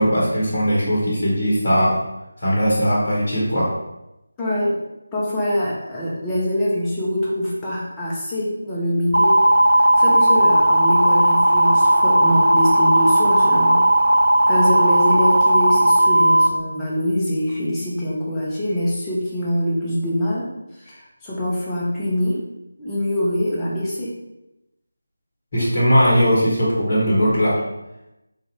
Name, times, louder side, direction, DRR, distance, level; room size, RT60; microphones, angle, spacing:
voice 1, 0.0-2.0 2.4-3.8 25.5-27.7, equal, 40° left, -5 dB, 1.0 m, -19 dB
voice 2, 4.4-4.8 5.1-9.4 9.7-13.8 14.5-22.4 22.8-24.2, equal, 10° left, -8 dB, 0.7 m, -24 dB
sound 1, 9.1-16.5, right 1 dB, 80° right, 0.3 m, -15 dB
3.6 x 2.5 x 3.3 m, 0.91 s
figure-of-eight pair, 160°, 0 cm